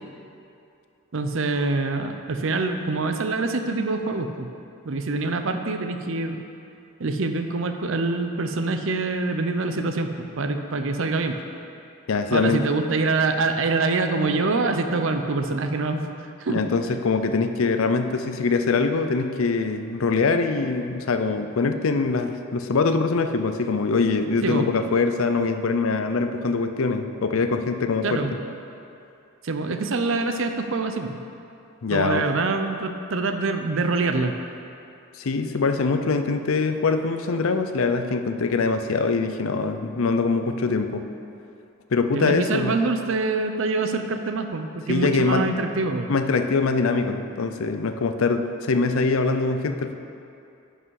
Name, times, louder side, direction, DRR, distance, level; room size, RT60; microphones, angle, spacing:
voice 1, 1.1-4.5 4.9-6.4 7.0-11.4 12.3-16.1 16.4-16.6 24.4-24.7 28.0-28.4 29.4-31.2 31.9-34.3 42.1-46.1, right 3 dB, 65° right, 7 dB, 0.6 m, -25 dB
voice 2, 12.1-12.6 16.5-28.2 31.8-32.2 35.2-41.0 41.9-42.7 44.9-45.5 46.1-49.9, left 4 dB, 75° left, 8 dB, 0.5 m, -23 dB
11.0 x 5.6 x 4.8 m, 2.7 s
head